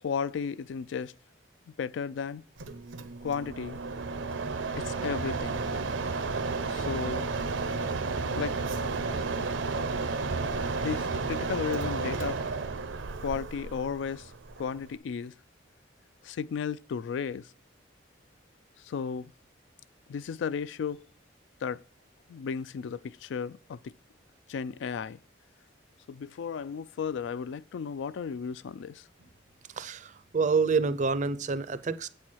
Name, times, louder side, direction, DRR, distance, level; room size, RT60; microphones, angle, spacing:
voice 1, 0.0-1.1 1.7-2.4 3.2-3.8 4.8-5.7 6.7-7.3 8.4-8.6 10.8-12.4 13.2-14.3 14.6-15.3 16.2-17.5 18.8-19.3 20.1-21.1 21.6-21.8 22.3-23.9 24.5-25.2 26.1-29.0, left 6 dB, 70° left, 0.3 m, -34 dB
Mechanisms, 2.6-15.0, right 4 dB, 80° right, 0.7 m, -32 dB
voice 2, 29.8-32.1, right 4 dB, 40° right, 0.5 m, -27 dB
7.9 x 4.4 x 6.2 m
head